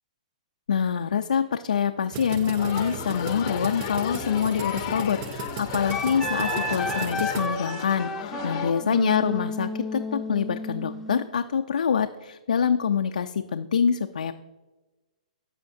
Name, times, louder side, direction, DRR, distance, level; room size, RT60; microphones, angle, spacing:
voice 1, 0.7-14.3, left 7 dB, 90° left, 7 dB, 0.3 m, -25 dB
sound 1, 2.1-7.5, right 8 dB, 30° right, 0.4 m, -37 dB
sound 2, 2.6-8.7, left 11 dB, 40° left, 0.6 m, -34 dB
Wind instrument woodwind instrument, 5.9-11.3, left 1 dB, ahead, 0.7 m, -32 dB
13.5 x 5.6 x 2.6 m, 1.2 s
hypercardioid pair, 140°, 4 cm